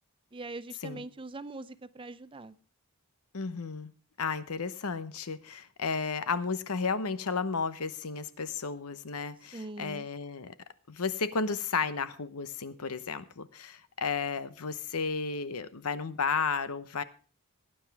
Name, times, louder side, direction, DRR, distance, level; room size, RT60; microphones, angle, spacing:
voice 1, 0.3-2.6 9.5-10.1, right 2 dB, 25° right, 14 dB, 0.5 m, -42 dB
voice 2, 3.3-3.9 4.2-10.5 10.9-17.0, left 5 dB, 80° left, 13 dB, 0.9 m, -33 dB
18.5 x 9.6 x 3.5 m, 0.37 s
head